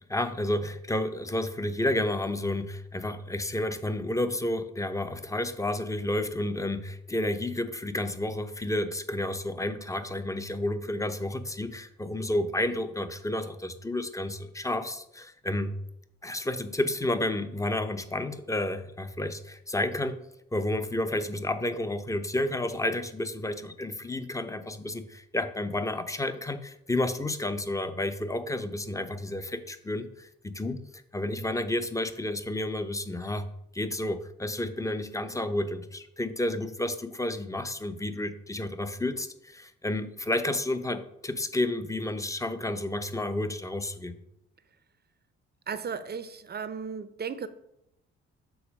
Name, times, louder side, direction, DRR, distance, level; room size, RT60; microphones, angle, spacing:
voice 1, 0.0-15.7 16.2-20.2 20.5-30.8 31.1-33.5 33.7-44.2, left 1 dB, 10° left, 9 dB, 0.7 m, -31 dB
voice 2, 45.7-47.5, right 6 dB, 30° right, 13 dB, 0.7 m, -35 dB
7.1 x 4.2 x 5.1 m, 0.80 s
figure-of-eight pair, 40°, 33 cm